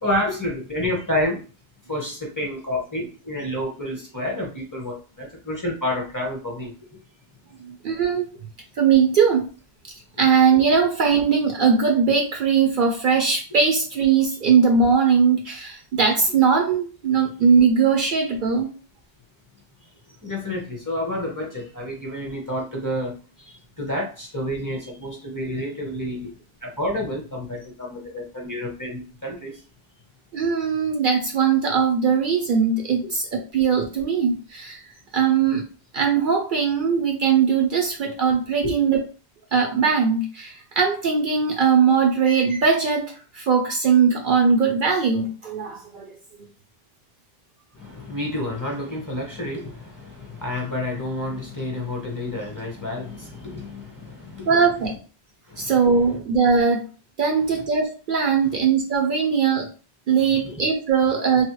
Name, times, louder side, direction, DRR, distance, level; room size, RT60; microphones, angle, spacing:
voice 1, 0.0-1.4 1.9-7.0 20.2-23.1 23.4-26.3 26.6-29.6 33.0-33.1 38.6-38.7 47.7-54.5 55.5-56.2 58.5-58.6 60.3-60.6 61.0-61.1, left 1 dB, 20° left, -2 dB, 0.8 m, -29 dB
voice 2, 7.6-8.3 8.8-9.5 10.2-18.7 30.3-34.8 35.1-35.7 35.9-39.0 39.5-46.5 54.5-54.9 55.6-56.9 57.2-59.7 60.1-61.4, right 6 dB, 60° right, 2 dB, 0.6 m, -20 dB
3.1 x 2.1 x 3.0 m, 0.36 s
omnidirectional pair, 1.1 m